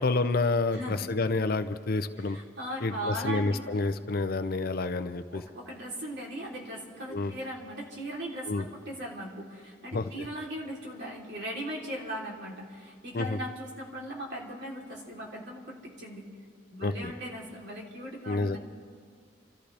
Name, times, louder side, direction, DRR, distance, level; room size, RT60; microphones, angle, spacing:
voice 1, 0.0-2.4 2.8-5.4 7.1-7.3 8.5-8.7 9.9-10.1 13.1-13.4 16.8-17.1 18.3-18.6, left 3 dB, 45° left, 10 dB, 0.5 m, -29 dB
voice 2, 2.3-3.6 5.3-16.2 16.7-18.6, right 1 dB, 55° right, -3 dB, 3.3 m, -38 dB
28.5 x 14.0 x 3.4 m, 2.1 s
head